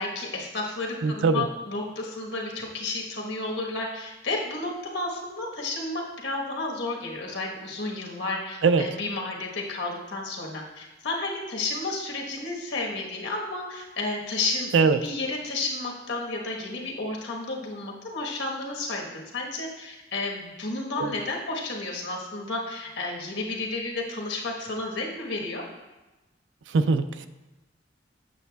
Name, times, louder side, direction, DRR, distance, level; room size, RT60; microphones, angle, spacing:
voice 1, 0.0-14.7 15.0-19.0 19.3-25.6, left 2 dB, 80° left, -1 dB, 1.2 m, -32 dB
voice 2, 1.0-1.5 8.6-8.9 14.7-15.0 21.0-21.1 26.7-27.3, right 4 dB, 80° right, 11 dB, 0.4 m, -21 dB
8.1 x 6.7 x 2.3 m, 1.1 s
head